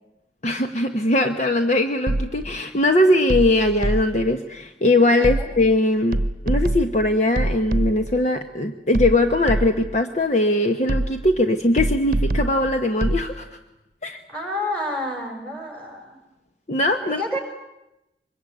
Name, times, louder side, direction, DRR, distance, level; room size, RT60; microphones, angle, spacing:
voice 1, 0.4-6.2 6.4-13.5 14.0-14.2 16.7-17.2, left 1 dB, 40° left, 6 dB, 1.1 m, -20 dB
sound 1, 2.1-2.6 3.3-4.3 5.2-5.8 6.1-8.2 8.9-10.0 10.9-11.4 11.8-13.3, right 1 dB, 55° right, 1.0 m, -25 dB
voice 2, 5.2-5.5 14.3-16.2 17.0-17.4, left 1 dB, 10° left, 3 dB, 5.8 m, -29 dB
25.0 x 22.0 x 9.3 m, 0.94 s
head